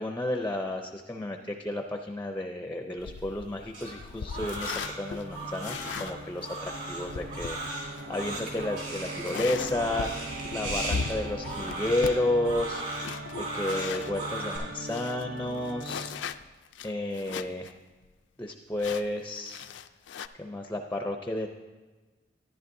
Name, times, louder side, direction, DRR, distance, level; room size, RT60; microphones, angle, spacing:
voice 1, 0.0-12.8 13.4-16.1 16.8-17.8 18.4-19.6 20.4-21.5, left 1 dB, 10° left, 4 dB, 0.5 m, -32 dB
sound 1, 3.0-14.2 14.6-14.7 14.9-17.7 18.0-18.1 18.8-20.3, left 5 dB, 75° left, 0.4 m, -39 dB
Crying sobbing, 3.7-14.6, right 2 dB, 50° right, 3.7 m, -37 dB
Organ, 4.6-16.5, right 1 dB, 80° right, 0.6 m, -41 dB
13.5 x 10.5 x 2.6 m, 1.3 s
head